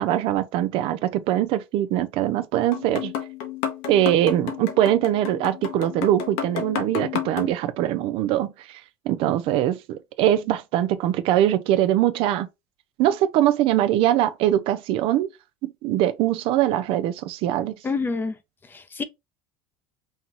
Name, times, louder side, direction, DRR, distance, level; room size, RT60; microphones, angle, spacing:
voice 1, 0.0-3.1 3.9-8.8 9.1-12.5 13.0-15.3 15.6-17.8, right 12 dB, 55° right, 0.5 m, -22 dB
sound 1, 2.7-7.5, left 9 dB, 70° left, 1.1 m, -31 dB
voice 2, 17.8-18.4 18.6-19.0, left 4 dB, 20° left, 0.7 m, -27 dB
5.5 x 2.3 x 3.0 m
supercardioid pair, 125°, 11 cm